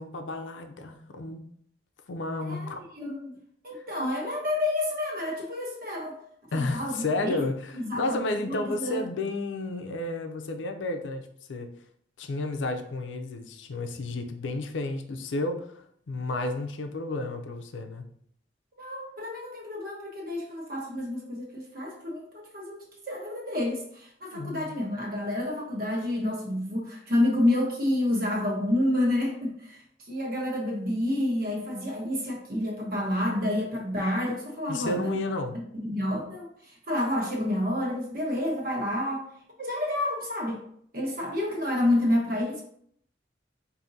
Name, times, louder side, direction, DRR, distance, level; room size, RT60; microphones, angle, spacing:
voice 1, 0.0-1.5 2.1-2.8 3.7-3.8 6.5-11.7 12.2-18.0 24.3-24.7 34.7-35.6, left 2 dB, 90° left, 6 dB, 0.5 m, -32 dB
voice 2, 2.4-3.3 3.6-6.2 6.5-7.4 7.7-9.0 18.8-29.8 30.1-35.2 35.5-39.2 39.6-40.6 40.9-42.6, left 1 dB, 50° right, -1 dB, 1.1 m, -29 dB
5.0 x 2.6 x 2.7 m, 0.66 s
head